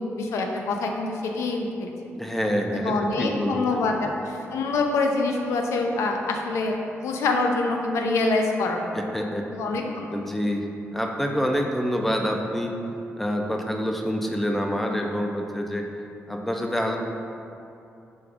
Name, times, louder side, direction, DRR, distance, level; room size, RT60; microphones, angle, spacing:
voice 1, 0.0-1.9 2.7-6.8 7.0-9.0 9.5-10.2, left 3 dB, 85° left, 2 dB, 0.4 m, -25 dB
voice 2, 2.2-4.1 8.9-9.4 10.1-10.6 10.9-12.7 13.2-15.8 16.3-17.0, equal, 5° left, 2 dB, 0.4 m, -27 dB
5.1 x 2.3 x 3.4 m, 2.6 s
cardioid pair, 115°, 5 cm